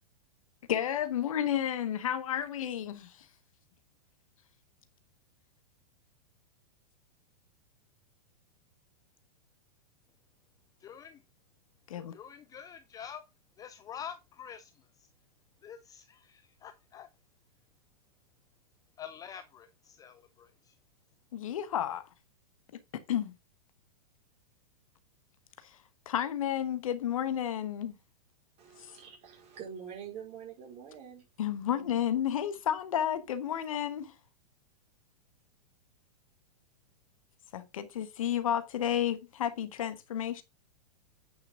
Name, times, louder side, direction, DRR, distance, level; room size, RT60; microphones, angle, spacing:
voice 1, 0.7-3.3 11.9-12.1 21.3-22.0 22.9-23.3 25.6-25.8 26.1-28.0 31.4-34.1 37.5-40.4, left 10 dB, 55° left, 1.2 m, -31 dB
voice 2, 10.8-11.2 12.1-13.2 13.6-15.1 15.6-17.1 19.0-20.8, left 8 dB, 15° left, 0.5 m, -47 dB
voice 3, 28.6-31.2 31.7-32.1, right 8 dB, 30° right, 4.7 m, -46 dB
9.0 x 6.4 x 3.7 m
figure-of-eight pair, 105°, 20 cm